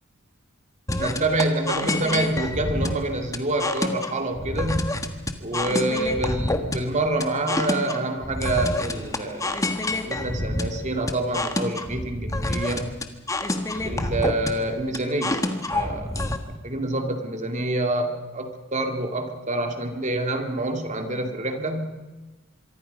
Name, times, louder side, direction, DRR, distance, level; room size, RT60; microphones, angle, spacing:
sound 1, 0.9-16.4, left 1 dB, 15° left, 1.4 m, -27 dB
voice 1, 1.0-5.0 5.4-9.6 10.0-13.0 13.8-15.4 15.7-21.8, right 2 dB, 35° right, 5 dB, 2.5 m, -27 dB
26.0 x 23.5 x 5.5 m, 1.2 s
head